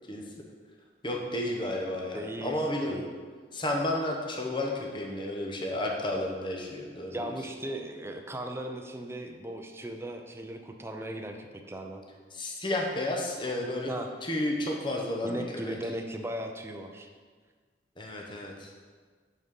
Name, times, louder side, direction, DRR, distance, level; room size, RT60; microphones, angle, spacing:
voice 1, 1.0-3.0 3.5-7.3 12.3-13.9 14.2-15.7 18.0-18.7, left 1 dB, 25° left, 0 dB, 1.0 m, -32 dB
voice 2, 2.1-2.6 2.9-3.1 7.1-12.0 13.8-14.1 15.2-17.1, right 1 dB, 15° right, 4 dB, 0.6 m, -37 dB
6.6 x 6.2 x 5.4 m, 1.5 s
head